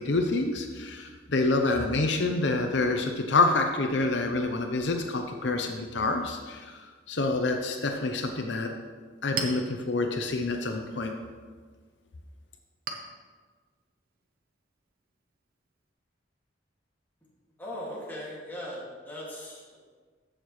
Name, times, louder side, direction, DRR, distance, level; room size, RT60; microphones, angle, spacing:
voice 1, 0.0-8.7 9.2-11.1, left 3 dB, 70° left, 4 dB, 0.7 m, -27 dB
Chink clink, 8.8-15.9, right 5 dB, 50° right, 0.9 m, -43 dB
voice 2, 17.6-19.8, equal, 10° left, -6 dB, 2.2 m, -39 dB
14.0 x 6.5 x 3.2 m, 1.5 s
head